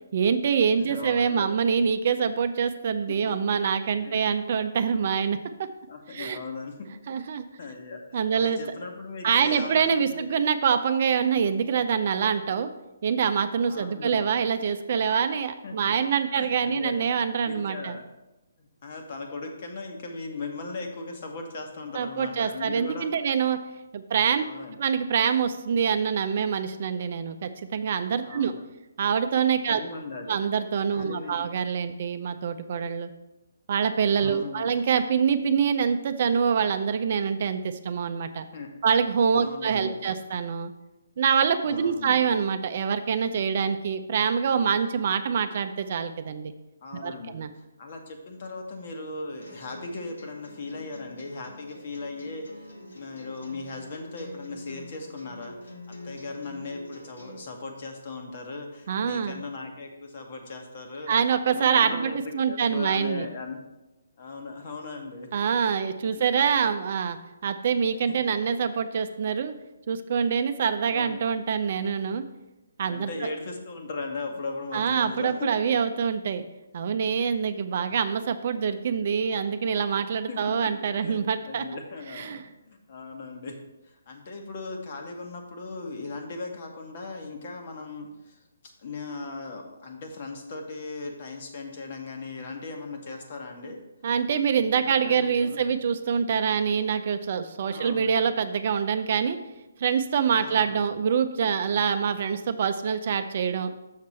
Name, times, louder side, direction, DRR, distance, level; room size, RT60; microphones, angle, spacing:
voice 1, 0.1-5.4 6.1-6.4 7.1-7.5 8.1-8.6 9.2-12.7 13.0-18.0 21.9-23.6 23.9-24.4 24.8-28.5 29.0-29.8 30.3-33.1 33.7-38.5 38.8-40.7 41.2-46.5 47.0-47.5 58.9-59.4 61.1-63.3 65.3-67.2 67.4-69.5 69.9-72.2 72.8-73.1 74.7-76.4 76.7-81.6 82.2-82.4 94.0-99.4 99.8-103.7, right 7 dB, 50° right, 9 dB, 0.5 m, -25 dB
voice 2, 0.8-1.5 3.1-3.4 4.0-4.2 5.9-7.2 7.6-10.2 13.7-14.5 15.6-18.1 18.6-23.1 24.4-24.8 28.2-28.6 29.6-30.4 30.9-31.5 34.2-34.8 38.4-38.7 39.3-40.1 41.7-42.2 46.8-52.7 52.9-61.1 61.5-63.6 64.2-65.3 66.1-66.2 68.1-68.2 70.9-71.3 72.9-75.5 80.3-83.6 83.8-93.8 94.7-95.7 97.7-98.2 100.4-100.9, left 3 dB, 45° left, 3 dB, 1.3 m, -38 dB
sound 1, 49.4-57.4, left 2 dB, 80° left, 1.4 m, -45 dB
6.6 x 6.0 x 4.3 m, 0.99 s
figure-of-eight pair, 145°, 0 cm